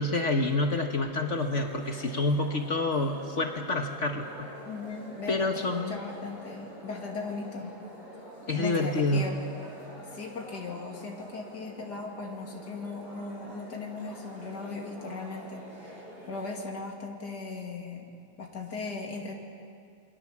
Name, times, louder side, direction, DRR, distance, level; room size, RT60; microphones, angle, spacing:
voice 1, 0.0-4.5 5.3-6.0 8.5-9.3, left 2 dB, 50° left, 4 dB, 1.6 m, -28 dB
sound 1, 1.2-16.6, equal, 70° right, 7.4 m, -46 dB
voice 2, 4.7-7.8 8.5-9.4 10.1-18.0 18.4-19.3, left 3 dB, 85° left, 1 dB, 3.1 m, -38 dB
28.0 x 22.5 x 7.3 m, 2.4 s
omnidirectional pair, 1.7 m